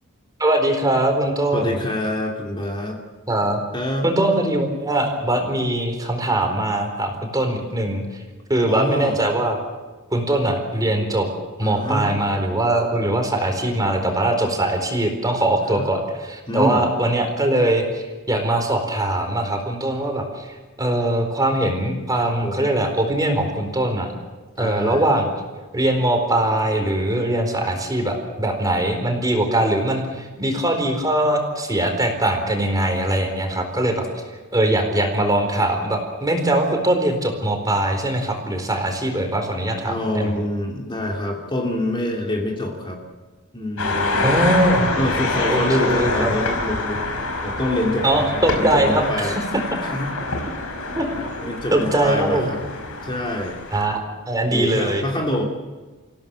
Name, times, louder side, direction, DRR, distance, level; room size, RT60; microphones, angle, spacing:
voice 1, 0.4-1.8 3.3-3.6 4.0-8.2 8.5-9.6 10.1-11.3 11.6-24.1 24.6-25.3 25.7-34.2 34.5-40.3 44.2-44.9 45.5-46.3 48.0-49.4 50.9-51.1 51.4-52.5 53.7-55.0, right 1 dB, 15° right, 4 dB, 4.3 m, -21 dB
voice 2, 1.5-3.0 3.7-4.1 8.7-9.2 11.6-12.1 15.7-15.8 16.5-16.9 22.2-22.7 24.6-25.1 27.6-27.7 39.9-43.0 43.5-44.5 45.0-49.4 49.8-50.1 51.5-52.6 53.0-53.6 54.5-55.4, left 1 dB, 25° left, -1 dB, 2.8 m, -26 dB
sound 1, 43.8-53.8, left 2 dB, 85° left, 5.2 m, -26 dB
27.5 x 16.5 x 7.7 m, 1.3 s
head